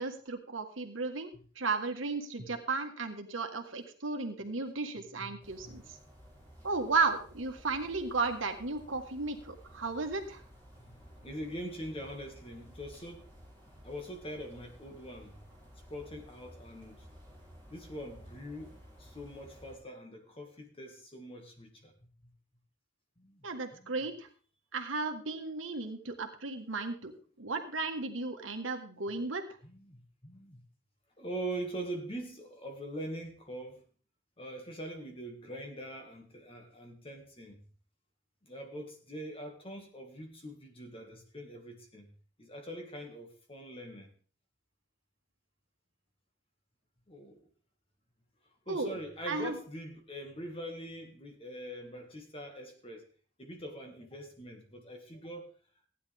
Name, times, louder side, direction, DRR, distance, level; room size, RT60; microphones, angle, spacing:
voice 1, 0.0-5.8 6.6-10.4 23.4-24.3 24.7-27.1 27.4-29.4 48.7-48.9 49.3-49.5, right 4 dB, 85° right, 5 dB, 1.7 m, -34 dB
voice 2, 5.2-5.8 10.8-13.3 13.8-15.4 15.9-17.1 17.7-21.9 23.2-23.5 23.7-24.0 29.6-30.6 31.2-33.8 34.4-37.6 38.4-42.1 42.4-44.1 47.1-47.4 48.7-53.1 53.4-55.5, right 1 dB, 30° left, 3 dB, 2.0 m, -43 dB
sound 1, 5.4-19.8, equal, 10° left, 4.5 m, -55 dB
15.0 x 10.0 x 3.5 m, 0.41 s
head